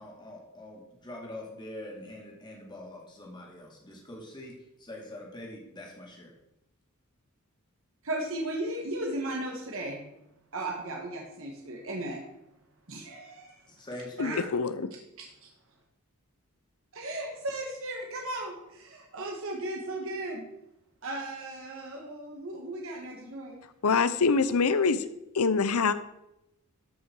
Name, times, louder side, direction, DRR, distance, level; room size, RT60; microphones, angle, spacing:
voice 1, 0.0-6.3 13.7-14.4, left 1 dB, 20° left, -1 dB, 2.3 m, -43 dB
voice 2, 8.0-10.0 10.5-12.2 12.9-13.6 14.2-14.4 15.2-15.5 16.9-20.4 21.0-23.6, right 1 dB, 65° right, 1 dB, 1.6 m, -36 dB
voice 3, 14.2-14.9 23.8-25.0 25.3-25.9, left 4 dB, 80° left, 14 dB, 0.7 m, -25 dB
13.5 x 5.7 x 4.6 m, 0.87 s
head